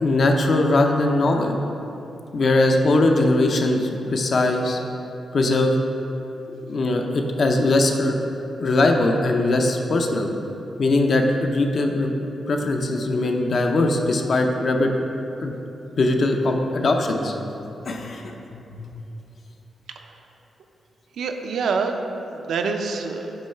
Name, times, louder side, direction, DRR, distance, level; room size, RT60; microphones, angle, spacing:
voice 1, 0.0-1.5 2.3-4.8 5.3-5.7 6.7-8.1 8.6-10.3 10.8-12.1 12.5-15.0 15.4-15.5 15.9-17.3 17.9-18.3 18.8-18.9, left 2 dB, 45° left, 3 dB, 0.5 m, -20 dB
voice 2, 21.2-23.3, right 4 dB, 80° right, 4 dB, 0.5 m, -26 dB
8.6 x 3.1 x 5.5 m, 2.9 s
wide cardioid pair, 150°, 0 cm